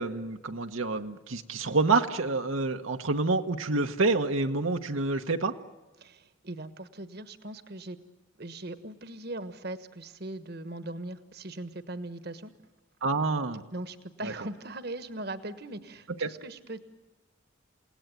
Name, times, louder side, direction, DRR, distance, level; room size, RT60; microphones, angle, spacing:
voice 1, 0.0-5.5 13.0-13.6 14.2-14.3 16.2-16.3, right 3 dB, 80° right, 6 dB, 1.2 m, -28 dB
voice 2, 6.0-8.0 8.4-12.5 13.7-16.8, right 2 dB, 50° right, 12 dB, 1.3 m, -40 dB
29.5 x 18.0 x 9.2 m, 1.2 s
head